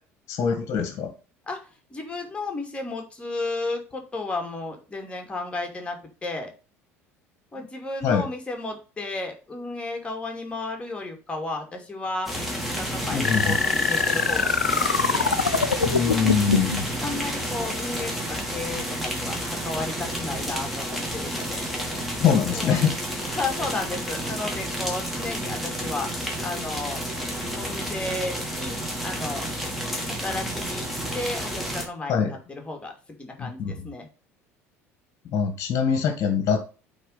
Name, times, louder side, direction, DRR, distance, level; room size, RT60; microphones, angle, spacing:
voice 1, 0.3-1.1 8.0-8.3 13.1-13.6 15.9-16.9 22.1-23.0 32.1-32.3 33.4-33.9 35.3-36.6, left 7 dB, 40° left, 7 dB, 1.7 m, -24 dB
voice 2, 1.9-6.5 7.5-15.4 17.0-21.6 22.5-22.8 23.3-26.1 26.4-27.0 27.5-28.8 29.0-29.5 30.1-30.9 31.1-34.1, left 2 dB, 15° left, 3 dB, 2.7 m, -33 dB
sound 1, 12.3-31.9, equal, ahead, 3.0 m, -30 dB
sound 2, 13.2-16.8, left 5 dB, 85° left, 0.4 m, -24 dB
8.4 x 4.1 x 5.4 m, 0.35 s
figure-of-eight pair, 65°, 8 cm